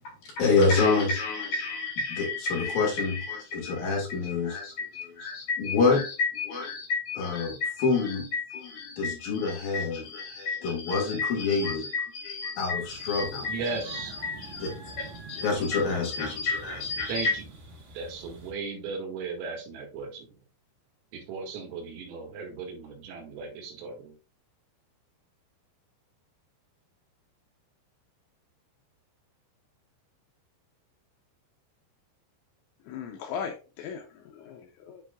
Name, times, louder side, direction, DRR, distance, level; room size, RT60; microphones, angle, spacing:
voice 1, 0.2-17.3, left 4 dB, 55° left, 3.2 m, -28 dB
sound 1, 12.8-18.5, right 3 dB, 45° right, 3.3 m, -46 dB
voice 2, 13.5-14.2 17.1-17.3 17.9-20.3 21.1-24.1, right 4 dB, 80° right, 4.6 m, -36 dB
voice 3, 32.9-35.0, left 7 dB, 90° left, 2.7 m, -38 dB
9.9 x 4.8 x 2.5 m
omnidirectional pair, 5.9 m